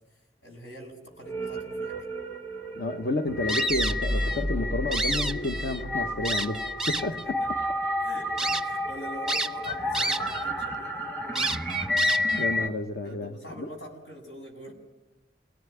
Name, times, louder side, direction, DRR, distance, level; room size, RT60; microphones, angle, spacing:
voice 1, 0.1-2.0 6.9-7.1 7.6-7.7 8.0-11.5 13.0-14.7, equal, 80° left, 3 dB, 7.2 m, -44 dB
sound 1, 1.1-12.7, left 1 dB, 10° left, 1.4 m, -31 dB
voice 2, 2.7-7.4 12.4-13.7, left 2 dB, 60° left, 7 dB, 1.1 m, -31 dB
sound 2, 3.5-4.4 4.8-5.8 6.2-7.2 7.8-7.9 8.4-8.6 9.3-10.4 10.7-10.8 11.3-12.4, right 2 dB, 5° right, 0.8 m, -29 dB
sound 3, 3.7-7.0, equal, 40° left, 7.8 m, -33 dB
28.0 x 18.5 x 9.8 m, 1.1 s
head